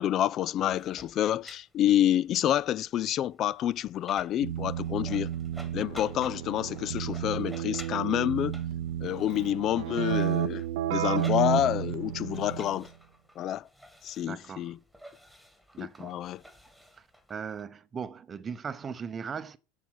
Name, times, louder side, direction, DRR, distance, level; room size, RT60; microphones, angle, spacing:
voice 1, 0.0-5.3 5.7-8.6 9.0-12.9 13.4-13.6 14.0-14.8 15.8-16.4, left 11 dB, 45° left, 0.4 m, -28 dB
sound 1, 0.7-17.6, equal, ahead, 1.8 m, -52 dB
Keyboard (musical), 4.4-12.8, right 12 dB, 65° right, 0.6 m, -32 dB
voice 2, 14.2-14.8 15.7-16.2 16.9-19.6, right 6 dB, 30° right, 0.7 m, -39 dB
7.3 x 6.6 x 5.8 m
hypercardioid pair, 85°, 0 cm